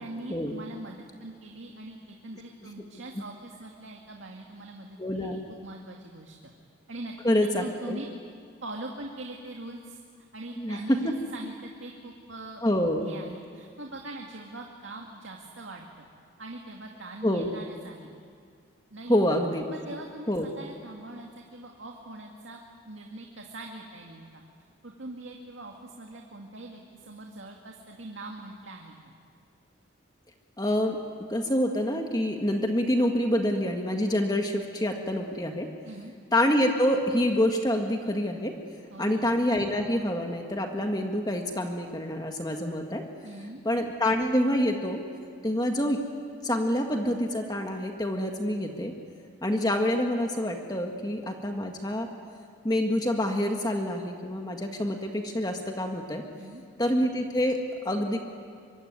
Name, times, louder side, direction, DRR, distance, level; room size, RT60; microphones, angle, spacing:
voice 1, 0.0-6.5 6.9-7.1 7.4-8.1 8.6-10.0 10.3-12.6 13.0-16.0 16.4-18.1 18.9-19.1 19.7-24.4 24.8-28.9 35.8-36.1 38.9-39.3 43.2-43.6 56.4-56.6, right 2 dB, 75° right, 1 dB, 2.2 m, -42 dB
voice 2, 5.0-5.4 7.2-8.0 10.5-11.1 12.6-13.1 17.2-17.5 19.1-19.7 20.3-20.5 30.6-31.0 31.3-35.7 36.3-38.5 39.0-43.0 43.6-45.0 45.4-46.0 46.4-48.9 49.4-52.1 52.6-56.2 56.8-58.2, left 1 dB, 20° left, 3 dB, 1.7 m, -27 dB
24.5 x 24.0 x 9.5 m, 2.1 s
head